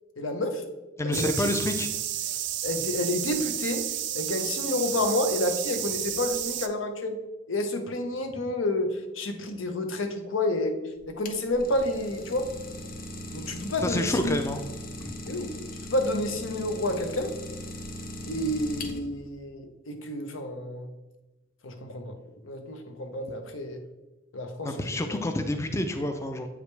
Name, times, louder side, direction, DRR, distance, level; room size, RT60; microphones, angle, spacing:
voice 1, 0.2-0.6 1.0-1.5 2.6-3.9 4.1-7.2 7.5-10.7 11.1-12.5 13.3-14.4 15.2-15.5 15.9-17.3 18.3-20.9 21.6-22.1 22.4-23.8 24.3-24.7 25.1-25.2, left 1 dB, 80° left, 6 dB, 0.9 m, -29 dB
voice 2, 1.0-1.9 13.8-14.6 15.0-15.2 24.6-26.5, left 1 dB, 15° left, 6 dB, 0.4 m, -28 dB
sound 1, 1.1-6.7, right 11 dB, 60° right, 0.5 m, -31 dB
Idling, 11.0-19.3, left 1 dB, 45° left, 0.8 m, -39 dB
8.0 x 5.0 x 3.3 m, 1.1 s
head